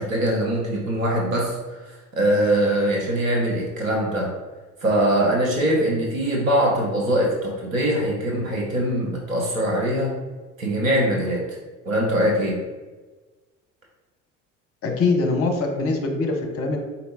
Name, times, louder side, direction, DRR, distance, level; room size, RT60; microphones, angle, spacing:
voice 1, 0.0-1.5 1.8-4.3 4.8-10.2 10.6-11.6 11.8-12.6, right 1 dB, 85° right, -3 dB, 0.9 m, -22 dB
voice 2, 14.8-16.8, left 3 dB, 35° left, 3 dB, 0.8 m, -23 dB
4.3 x 2.8 x 2.6 m, 1.3 s
figure-of-eight pair, 60°, 39 cm